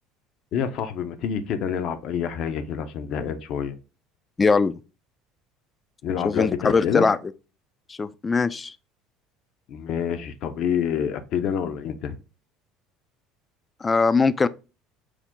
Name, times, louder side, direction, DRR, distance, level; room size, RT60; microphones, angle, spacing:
voice 1, 0.5-3.7 6.0-7.1 9.7-12.2, left 8 dB, 60° left, 0.6 m, -27 dB
voice 2, 4.4-4.8 6.2-7.2 7.9-8.7 13.8-14.5, left 4 dB, 25° left, 0.3 m, -21 dB
4.8 x 2.1 x 3.7 m
supercardioid pair, 85°, 0 cm